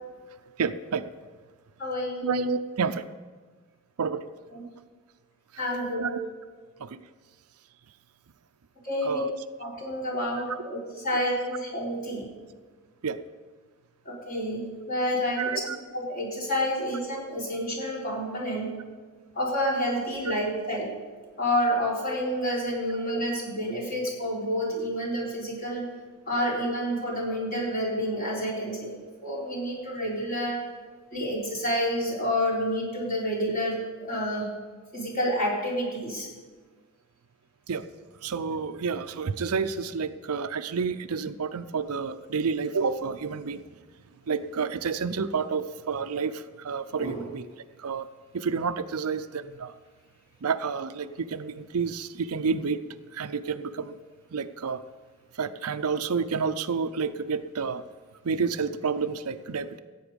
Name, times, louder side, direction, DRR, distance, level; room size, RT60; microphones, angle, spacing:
voice 1, 0.6-1.1 2.2-3.0 4.0-4.2 6.0-6.2 6.8-7.0 9.0-9.3 13.0-13.2 15.4-15.8 37.7-37.8 38.2-43.6 44.3-47.5 47.8-48.1 48.3-49.7 50.4-52.8 53.1-54.0 54.3-54.8 55.4-57.8 58.2-59.8, right 5 dB, 75° right, 11 dB, 0.6 m, -29 dB
voice 2, 1.8-2.3 4.5-4.6 5.6-6.1 8.8-9.3 9.6-10.8 11.0-12.3 14.1-18.7 19.4-20.9 21.4-25.8 26.3-30.6 31.1-34.5 34.9-36.3 47.0-47.2, equal, 40° left, -4 dB, 4.0 m, -29 dB
15.0 x 8.9 x 5.2 m, 1.4 s
head